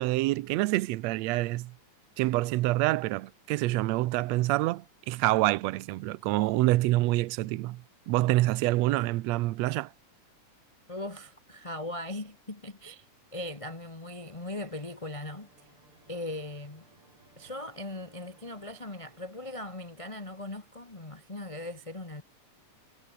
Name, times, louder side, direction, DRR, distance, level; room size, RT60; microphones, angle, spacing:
voice 1, 0.0-1.8 2.2-9.9, right 18 dB, 75° right, 1.7 m, -27 dB
voice 2, 10.9-15.5 16.1-16.8 17.4-22.2, left 1 dB, 15° left, 1.1 m, -39 dB
sound 1, 14.2-20.2, right 2 dB, 40° right, 8.4 m, -62 dB
omnidirectional pair, 3.6 m